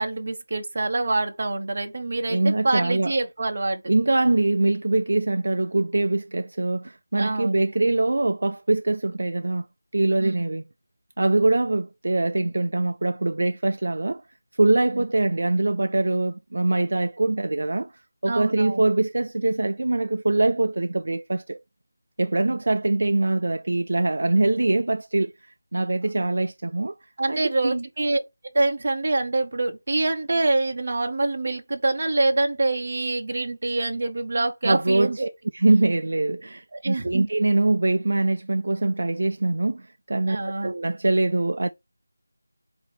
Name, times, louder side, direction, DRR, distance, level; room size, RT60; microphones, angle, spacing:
voice 1, 0.0-3.9 7.1-7.5 10.2-10.4 14.9-15.0 18.3-18.8 22.4-22.6 27.2-35.3 36.7-37.3 40.3-40.7, right 2 dB, 30° right, 0.9 m, -25 dB
voice 2, 2.3-3.1 3.9-9.6 9.9-10.6 11.2-14.2 14.6-17.9 18.2-21.6 22.2-25.3 25.7-26.9 27.3-27.8 34.6-35.2 35.5-41.7, right 2 dB, 45° right, 0.3 m, -23 dB
8.1 x 2.7 x 4.5 m
figure-of-eight pair, 180°, 0 cm